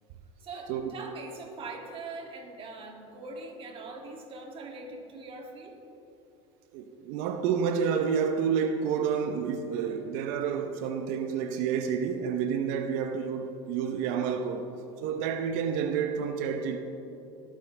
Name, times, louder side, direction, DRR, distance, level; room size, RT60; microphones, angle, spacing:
voice 1, 0.4-5.8, right 3 dB, 40° right, 2.4 m, -42 dB
voice 2, 6.7-14.7 15.0-16.8, right 7 dB, 70° right, 0.8 m, -29 dB
21.5 x 8.9 x 3.4 m
supercardioid pair, 95°, 14 cm